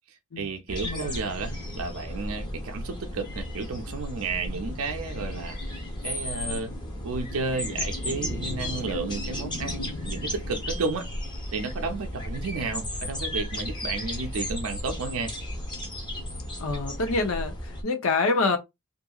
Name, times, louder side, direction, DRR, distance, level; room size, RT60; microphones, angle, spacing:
voice 1, 0.4-5.8 6.0-6.7 7.0-11.1 11.5-15.3, right 4 dB, 70° right, 0.5 m, -32 dB
sound 1, 0.7-17.8, left 1 dB, 20° left, 0.8 m, -34 dB
voice 2, 16.6-18.6, left 3 dB, 70° left, 0.6 m, -26 dB
2.7 x 2.6 x 2.3 m
head